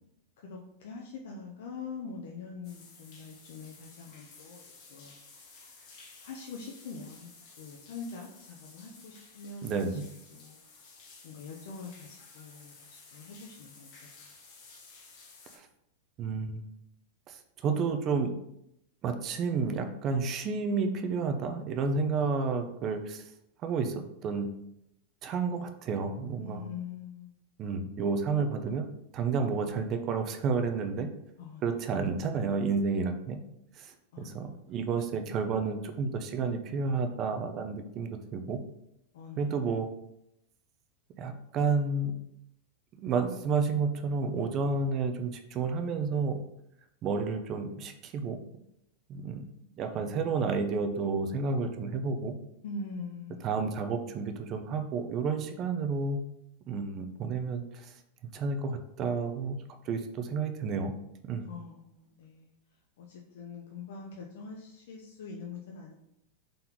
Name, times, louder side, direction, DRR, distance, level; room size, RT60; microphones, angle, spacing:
voice 1, 0.4-4.6 4.9-5.6 6.2-10.0 10.3-10.6 11.2-13.9 26.4-27.3 31.4-31.6 34.1-34.5 39.1-39.5 52.6-53.5 61.4-62.5 63.0-65.9, left 4 dB, 70° left, -1 dB, 0.6 m, -44 dB
sound 1, 2.6-15.6, left 4 dB, 45° left, 1.2 m, -54 dB
voice 2, 9.6-10.0 15.5-15.7 16.2-16.6 17.3-18.3 19.0-23.2 23.6-24.5 25.2-26.6 27.6-28.9 29.1-31.1 31.6-33.4 33.8-38.6 39.4-39.9 41.2-42.2 43.0-46.4 47.0-48.4 49.1-49.5 49.8-52.3 53.4-56.2 56.7-57.9 58.3-61.0 61.2-61.5, right 4 dB, 30° right, 7 dB, 0.4 m, -31 dB
3.8 x 3.7 x 2.9 m, 0.80 s
supercardioid pair, 155°, 0 cm